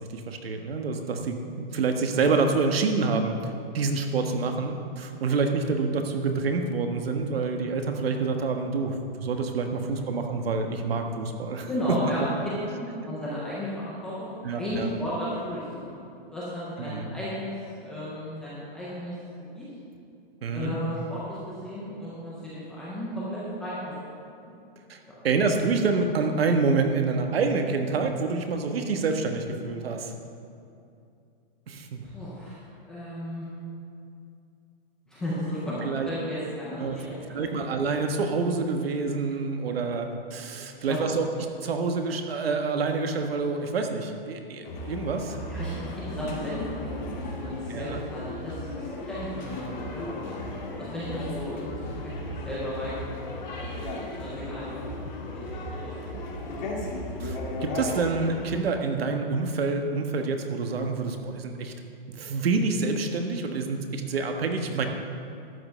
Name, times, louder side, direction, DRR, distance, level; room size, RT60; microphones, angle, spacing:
voice 1, 0.0-3.3 3.7-12.0 14.4-14.9 16.8-17.1 20.4-20.8 24.9-25.0 25.2-30.1 31.7-32.1 35.8-36.1 36.8-37.0 37.3-41.3 41.6-45.4 47.7-48.0 57.2-61.7 62.1-64.8, right 4 dB, 80° right, 5 dB, 1.4 m, -27 dB
voice 2, 11.7-12.5 12.8-15.9 16.3-19.1 19.5-19.6 20.5-23.9 24.4-24.6 25.1-25.2 32.0-33.4 35.1-37.6 40.8-41.0 45.5-53.7 54.1-56.1, equal, ahead, -10 dB, 0.4 m, -34 dB
sound 1, 44.6-58.5, left 1 dB, 50° left, 2.1 m, -35 dB
12.0 x 5.4 x 7.5 m, 2.5 s
hypercardioid pair, 175°, 29 cm